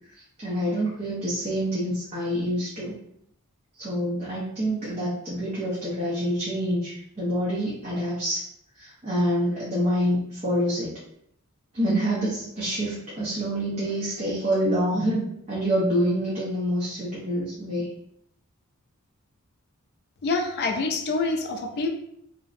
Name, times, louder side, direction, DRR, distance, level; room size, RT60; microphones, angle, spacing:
voice 1, 0.1-3.0 3.8-8.5 8.8-10.9 11.7-17.9, equal, 30° right, -8 dB, 0.6 m, -27 dB
voice 2, 20.2-21.9, left 3 dB, 50° left, 3 dB, 0.3 m, -26 dB
2.5 x 2.0 x 2.4 m, 0.74 s
head